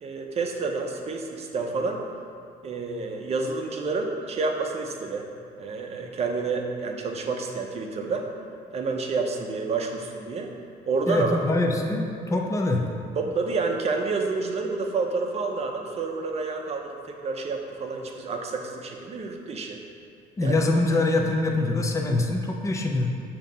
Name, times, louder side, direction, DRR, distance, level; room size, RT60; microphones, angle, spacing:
voice 1, 0.0-2.0 2.6-5.3 5.6-8.3 8.7-10.5 10.9-11.6 13.2-19.8 20.4-20.6, right 4 dB, 40° right, 2 dB, 0.6 m, -29 dB
voice 2, 11.1-12.8 20.4-23.1, left 2 dB, 20° left, 1 dB, 0.6 m, -24 dB
6.3 x 2.9 x 5.3 m, 2.4 s
cardioid pair, 110°, 17 cm